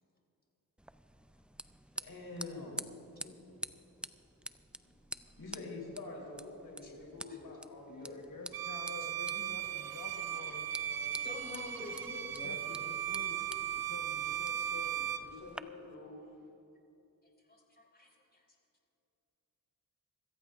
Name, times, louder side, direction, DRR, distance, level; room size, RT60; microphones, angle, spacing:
sound 1, 0.8-15.6, right 1 dB, 5° right, 0.5 m, -49 dB
voice 1, 2.0-3.5 4.8-4.9 5.4-8.1 15.2-16.1, left 2 dB, 90° left, -2 dB, 3.6 m, -46 dB
voice 2, 7.9-11.3 12.3-15.3, left 3 dB, 60° left, 1 dB, 1.4 m, -49 dB
Bowed string instrument, 8.5-15.3, right 10 dB, 70° right, 0.6 m, -37 dB
voice 3, 11.2-12.6 17.5-18.4, left 2 dB, 25° left, -1 dB, 4.0 m, -47 dB
25.0 x 14.5 x 2.6 m, 2.9 s
cardioid pair, 55°, 36 cm